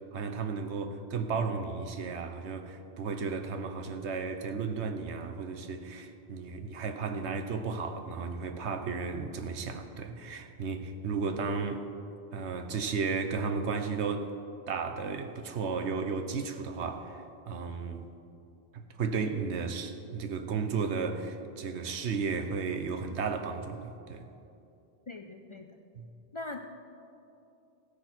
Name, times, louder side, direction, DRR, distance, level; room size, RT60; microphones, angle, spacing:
voice 1, 0.1-11.8 12.3-14.3 14.7-18.1 18.7-24.3 25.9-26.1, right 5 dB, 90° right, 8 dB, 1.1 m, -34 dB
voice 2, 25.1-25.7 26.3-26.7, left 2 dB, 40° left, 5 dB, 0.4 m, -41 dB
15.5 x 10.0 x 4.4 m, 2.7 s
omnidirectional pair, 1.1 m